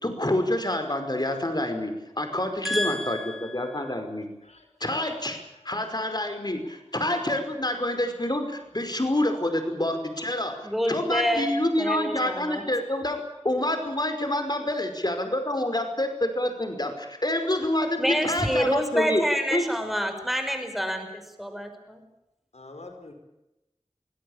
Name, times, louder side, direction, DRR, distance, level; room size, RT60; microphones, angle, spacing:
voice 1, 0.0-1.9 2.2-4.3 4.8-5.4 5.7-13.2 13.4-19.2 19.5-19.6, left 1 dB, 35° left, 7 dB, 5.2 m, -27 dB
voice 2, 2.6-3.9 10.6-11.5 11.8-12.6 18.0-22.0, equal, ahead, 6 dB, 5.4 m, -28 dB
voice 3, 4.4-4.9 17.9-18.0 22.5-23.1, left 2 dB, 70° left, 5 dB, 5.0 m, -46 dB
24.0 x 17.0 x 8.7 m, 0.93 s
wide cardioid pair, 40°, 12 cm